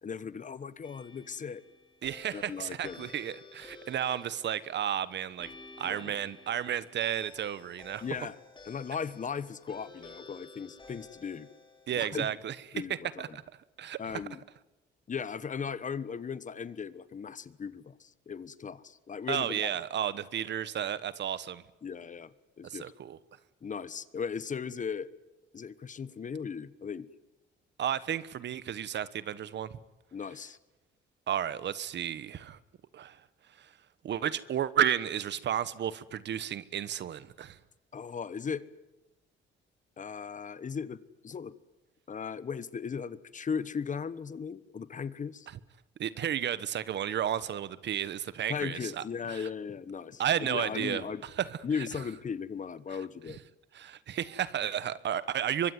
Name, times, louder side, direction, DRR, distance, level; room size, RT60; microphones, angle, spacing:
voice 1, 0.0-1.6 2.3-3.1 5.8-6.1 8.0-8.4 8.7-11.5 11.9-12.3 12.7-13.4 14.0-14.4 15.1-19.7 21.8-22.9 23.6-25.1 25.5-27.1 30.1-30.6 37.9-38.6 40.0-41.5 42.1-45.5 48.5-51.2 51.6-53.4, left 6 dB, 40° left, 1.2 m, -37 dB
sound 1, 0.8-12.1, left 3 dB, 25° left, 4.4 m, -53 dB
voice 2, 2.0-5.5 5.8-8.0 11.9-12.8 13.2-13.4 13.8-14.2 19.3-21.6 22.6-23.2 27.8-29.8 31.3-32.6 32.9-33.2 33.6-33.7 34.0-37.6 46.0-49.5 50.2-51.9 53.3-53.4 53.7-55.7, right 10 dB, 60° right, 1.2 m, -33 dB
24.0 x 22.0 x 9.5 m
cardioid pair, 90°, 20 cm